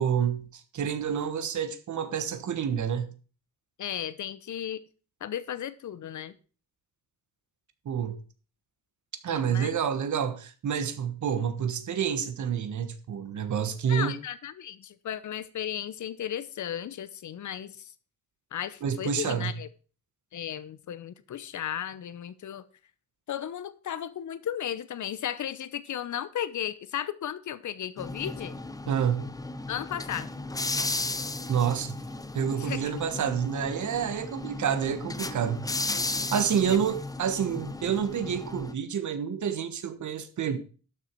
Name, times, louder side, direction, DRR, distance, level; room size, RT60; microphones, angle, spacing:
voice 1, 0.0-3.1 7.8-8.2 9.2-14.1 18.8-19.5 28.9-29.3 31.5-32.0 32.3-35.6 36.3-40.6, right 8 dB, 85° right, 1.3 m, -28 dB
voice 2, 3.8-4.8 5.2-6.4 9.3-9.7 13.9-17.9 18.5-19.7 20.3-22.6 23.3-28.6 29.7-30.3 32.5-32.9 36.2-36.3, left 10 dB, 80° left, 0.9 m, -35 dB
sound 1, 28.0-38.7, left 2 dB, 10° left, 0.6 m, -35 dB
12.0 x 6.9 x 4.5 m
wide cardioid pair, 140°, 29 cm